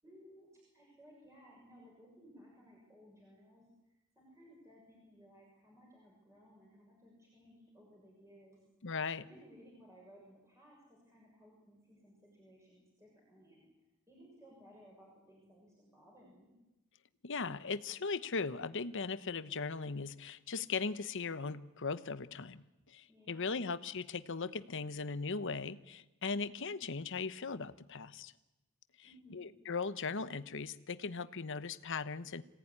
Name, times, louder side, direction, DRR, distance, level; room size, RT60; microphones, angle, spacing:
voice 1, 0.0-3.7 4.1-8.6 9.2-13.7 14.1-16.5 23.1-23.6 29.0-29.5, equal, 15° right, -3 dB, 6.6 m, -60 dB
voice 2, 8.8-9.2 17.2-28.3 29.3-32.4, left 4 dB, 60° left, 13 dB, 1.0 m, -38 dB
26.5 x 17.5 x 9.8 m, 1.0 s
head